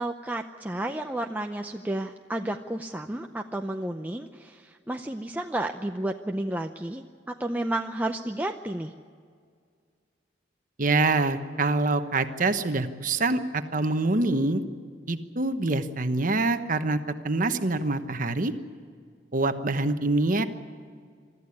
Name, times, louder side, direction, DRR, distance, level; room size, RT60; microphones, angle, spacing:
voice 1, 0.0-8.9, right 1 dB, 10° right, 4 dB, 0.6 m, -32 dB
voice 2, 10.8-14.6 15.1-17.0 17.2-18.5 19.3-20.4, right 2 dB, 45° right, 9 dB, 1.1 m, -25 dB
24.0 x 13.5 x 9.8 m, 2.1 s
head